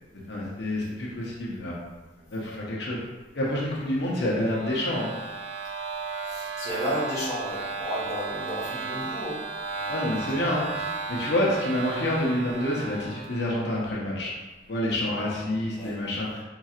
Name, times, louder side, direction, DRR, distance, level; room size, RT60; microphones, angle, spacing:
voice 1, 0.3-1.8 2.3-3.0 3.3-5.1 9.9-10.8 11.1-14.3 14.7-16.4, left 1 dB, 75° left, -4 dB, 0.8 m, -28 dB
sound 1, 4.0-13.7, right 4 dB, 35° right, 0.3 m, -35 dB
voice 2, 6.2-9.4 9.7-10.7 15.8-16.0, equal, 20° left, -9 dB, 1.2 m, -33 dB
4.3 x 3.8 x 2.4 m, 1.2 s
head